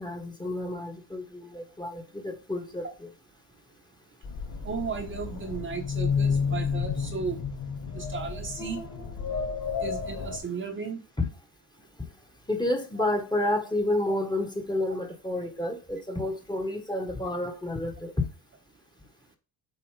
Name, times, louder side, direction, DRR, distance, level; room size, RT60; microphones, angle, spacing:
voice 1, 0.0-3.1 11.2-11.3 12.0-12.1 12.5-18.1, left 1 dB, 10° left, 1.3 m, -30 dB
sound 1, 4.2-10.4, left 6 dB, 55° left, 3.2 m, -31 dB
voice 2, 4.6-7.4 7.9-8.8 9.8-11.0 14.1-14.2, right 5 dB, 30° right, 1.0 m, -35 dB
8.0 x 4.4 x 4.8 m
cardioid pair, 130°, 42 cm